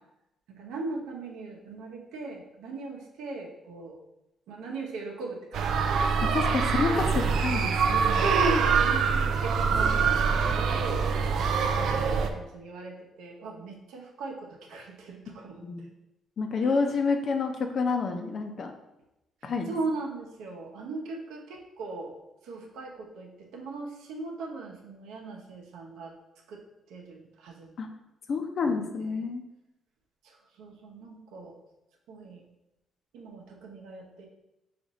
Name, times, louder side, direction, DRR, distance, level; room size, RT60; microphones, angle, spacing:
voice 1, 0.5-4.0 4.5-7.0 8.2-15.9 16.6-16.9 19.4-22.2 22.4-26.1 26.5-27.7 28.6-29.3 30.2-31.6 32.1-32.4 33.1-34.3, right 3 dB, 90° right, 0 dB, 0.8 m, -38 dB
sound 1, 5.5-12.3, right 5 dB, 75° right, 0.4 m, -25 dB
voice 2, 6.2-8.2 15.6-15.9 16.4-18.7 19.4-19.7 27.8-27.9 28.3-29.4, left 4 dB, 55° left, 5 dB, 0.6 m, -29 dB
5.0 x 2.6 x 4.0 m, 0.90 s
cardioid pair, 90°, 0 cm